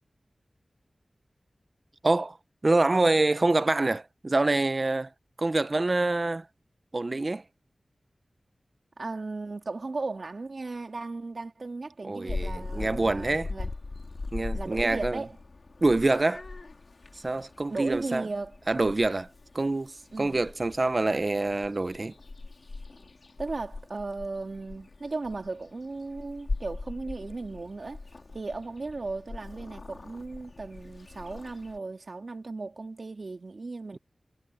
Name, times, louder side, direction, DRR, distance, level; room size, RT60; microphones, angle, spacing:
voice 1, 2.0-2.4 2.6-5.1 5.4-6.5 6.9-7.4 12.1-13.5 14.3-15.2 15.8-16.4 17.2-18.3 18.7-19.3 19.5-22.1, right 2 dB, 40° right, 0.7 m, -26 dB
voice 2, 9.0-13.7 14.5-15.4 17.7-18.6 20.1-20.4 23.4-28.0 28.3-34.0, right 3 dB, 60° right, 3.1 m, -36 dB
Purr / Meow, 12.3-31.8, left 3 dB, 60° left, 2.3 m, -40 dB
wide cardioid pair, 75°, 0 cm